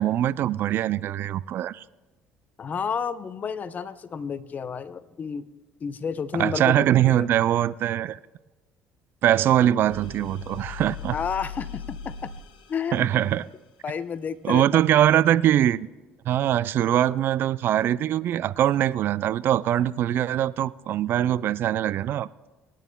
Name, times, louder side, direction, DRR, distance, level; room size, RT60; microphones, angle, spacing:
voice 1, 0.0-1.8 6.4-8.2 9.2-11.1 12.9-13.5 14.4-15.9 16.3-22.3, right 11 dB, 60° right, 0.3 m, -22 dB
voice 2, 2.6-5.4 5.8-7.3 11.1-12.3 12.7-13.1 13.8-14.8, left 6 dB, 40° left, 0.7 m, -31 dB
sound 1, 9.9-13.5, left 7 dB, 90° left, 1.0 m, -39 dB
26.0 x 9.2 x 2.3 m
hypercardioid pair, 60°, 4 cm